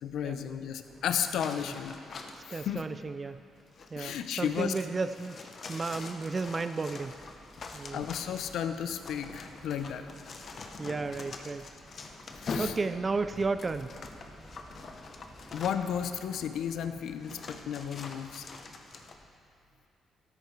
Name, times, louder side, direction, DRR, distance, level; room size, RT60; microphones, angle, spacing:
voice 1, 0.0-2.0 2.5-2.8 4.0-4.7 5.6-5.7 7.9-10.0 12.4-12.7 15.5-18.5, left 8 dB, 75° left, 9 dB, 0.6 m, -33 dB
sound 1, 0.8-19.3, right 1 dB, 10° right, 1.9 m, -55 dB
sound 2, 1.2-2.6 3.6-16.0 16.7-16.8 17.2-19.1, left 4 dB, 50° left, 0.9 m, -44 dB
voice 2, 2.5-3.4 3.9-5.4 5.7-7.1 7.7-8.0 10.8-11.7 12.6-13.9, right 4 dB, 30° right, 11 dB, 0.3 m, -33 dB
13.0 x 12.5 x 3.3 m, 2.4 s
cardioid pair, 90°, 0 cm